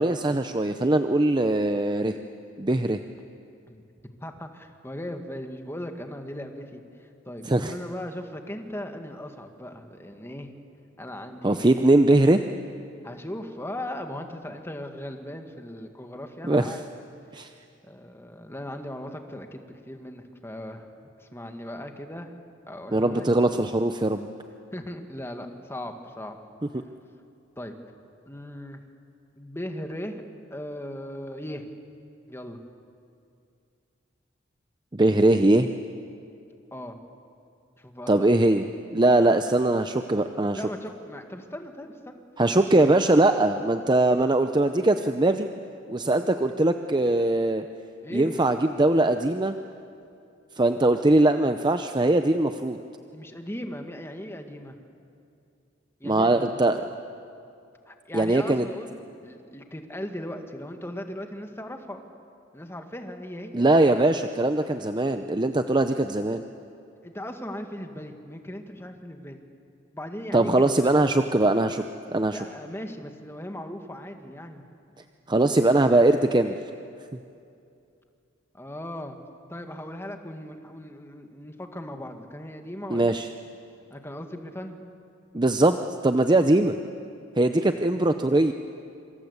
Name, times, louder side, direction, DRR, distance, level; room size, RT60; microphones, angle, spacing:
voice 1, 0.0-2.2 2.6-3.0 7.5-7.7 11.4-12.4 16.5-16.8 17.3-17.5 22.9-24.3 34.9-35.7 38.1-38.7 38.9-40.6 42.4-45.5 45.9-47.6 48.1-49.5 50.6-52.8 56.0-56.8 58.1-58.7 63.5-66.4 70.3-71.8 72.1-72.4 75.3-76.5 82.9-83.3 85.3-85.8 86.0-86.7 87.4-88.5, right 2 dB, 25° right, 8 dB, 0.7 m, -21 dB
voice 2, 4.2-10.5 11.0-12.0 13.0-16.9 17.8-20.9 21.2-22.3 22.7-23.3 24.7-26.4 27.6-27.7 28.3-28.8 29.3-30.2 30.5-31.7 32.3-32.6 36.7-37.0 37.8-38.5 40.5-42.9 48.0-48.5 53.1-54.8 56.0-56.6 57.9-59.0 59.2-62.0 62.5-63.7 67.0-69.4 69.9-71.0 72.3-74.6 78.5-79.2 79.5-83.2 83.9-84.8, left 1 dB, 15° left, 5 dB, 1.9 m, -38 dB
26.5 x 25.5 x 8.2 m, 2.5 s
head